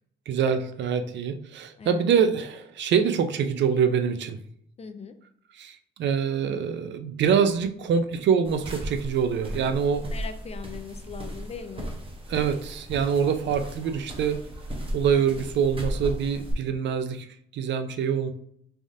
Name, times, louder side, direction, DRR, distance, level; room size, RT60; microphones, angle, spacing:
voice 1, 0.3-4.4 5.5-10.1 12.3-14.4 14.9-17.3 17.5-18.3, right 7 dB, 65° right, 8 dB, 0.5 m, -25 dB
voice 2, 4.8-5.2 10.0-11.9 15.1-15.3, left 6 dB, 30° left, 9 dB, 0.4 m, -40 dB
sound 1, 8.4-16.5, equal, 30° right, 0.8 m, -36 dB
3.5 x 3.4 x 2.6 m, 0.68 s
cardioid pair, 90°, 20 cm